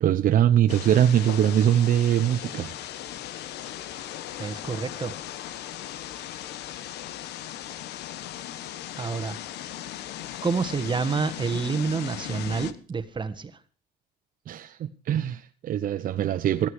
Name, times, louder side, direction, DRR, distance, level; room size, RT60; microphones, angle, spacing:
voice 1, 0.0-2.8 14.5-16.7, right 10 dB, 55° right, 0.9 m, -22 dB
sound 1, 0.7-12.7, left 12 dB, 80° left, 1.3 m, -37 dB
voice 2, 4.4-5.1 9.0-9.4 10.4-13.6, right 5 dB, 25° right, 1.5 m, -28 dB
16.5 x 13.5 x 4.8 m
cardioid pair, 110°, 17 cm